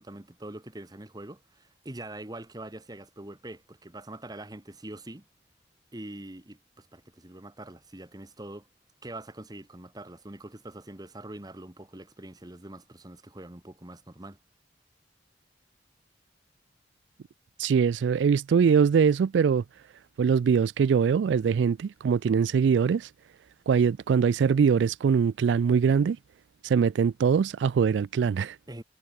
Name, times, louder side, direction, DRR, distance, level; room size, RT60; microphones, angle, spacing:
voice 1, 0.0-5.2 5.9-8.7 9.0-14.4 28.7-28.8, right 1 dB, 20° right, 1.4 m, -43 dB
voice 2, 17.6-19.6 20.2-23.1 23.7-26.2 26.6-28.6, right 6 dB, 90° right, 0.3 m, -22 dB
head